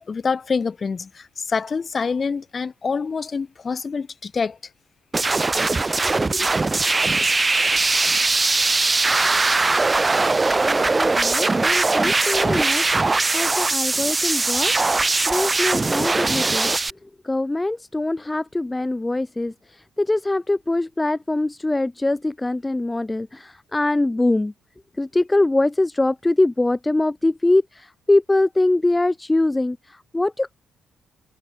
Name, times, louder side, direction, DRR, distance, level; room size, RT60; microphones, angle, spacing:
voice 1, 0.0-4.6 6.0-6.5, left 5 dB, 35° left, 1.9 m, -26 dB
sound 1, 5.1-16.9, right 3 dB, 25° right, 1.2 m, -20 dB
voice 2, 10.4-12.9 13.3-16.7 17.2-24.5 25.0-30.6, left 2 dB, 15° left, 0.3 m, -23 dB
cardioid pair, 90°, 0 cm